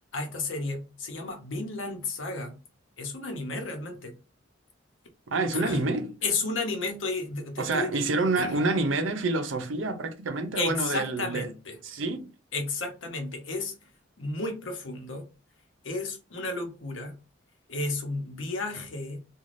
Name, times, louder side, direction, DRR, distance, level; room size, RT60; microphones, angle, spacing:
voice 1, 0.1-2.6 3.0-4.2 5.5-5.8 6.2-8.0 8.4-8.6 10.5-11.8 12.5-13.8 14.2-15.3 15.8-17.2 17.7-19.2, left 3 dB, 90° left, 0.8 m, -32 dB
voice 2, 5.3-6.1 7.6-11.5 11.8-12.3, right 3 dB, 85° right, 0.6 m, -28 dB
2.5 x 2.3 x 3.2 m
head